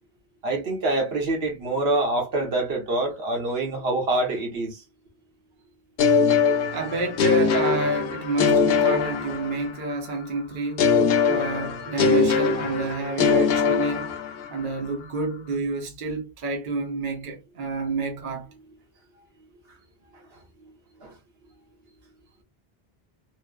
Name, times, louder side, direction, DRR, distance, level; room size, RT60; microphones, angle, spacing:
voice 1, 0.4-4.8 21.0-21.1, right 2 dB, 75° right, 1.1 m, -25 dB
sound 1, 6.0-9.9 10.8-14.6, left 5 dB, 75° left, 0.8 m, -22 dB
voice 2, 6.7-10.9 11.3-14.1 14.5-18.5, right 3 dB, 55° right, 0.8 m, -29 dB
2.9 x 2.0 x 2.2 m
omnidirectional pair, 1.0 m